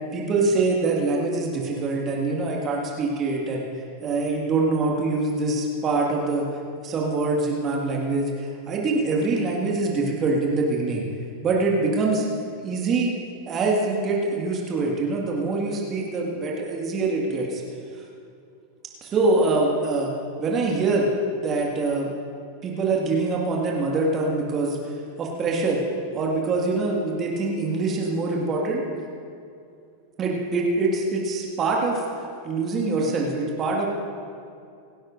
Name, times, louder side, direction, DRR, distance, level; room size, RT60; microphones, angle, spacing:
voice 1, 0.1-3.7 4.0-6.5 6.8-11.0 11.4-12.3 12.6-13.1 13.5-17.6 19.0-20.1 20.4-21.1 21.4-22.1 22.6-24.8 25.2-25.8 26.1-28.8 30.2-32.0 32.4-33.9, right 3 dB, 25° right, -2 dB, 2.0 m, -24 dB
27.5 x 12.0 x 2.7 m, 2.4 s
figure-of-eight pair, 90°, 0 cm